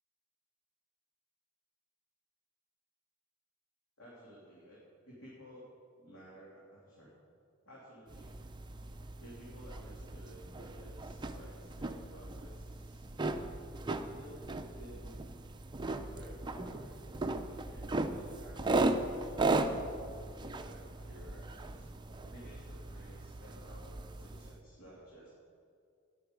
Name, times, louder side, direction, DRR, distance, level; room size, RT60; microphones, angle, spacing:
voice 1, 4.0-4.8 5.1-5.7 6.0-7.1 7.6-8.3 9.2-13.1 14.0-15.2 16.1-19.9 20.4-21.9 22.2-25.3, equal, 85° left, -7 dB, 3.1 m, -54 dB
sound 1, 8.1-24.6, right 2 dB, 20° right, 0.6 m, -37 dB
13.0 x 10.5 x 5.2 m, 2.3 s
head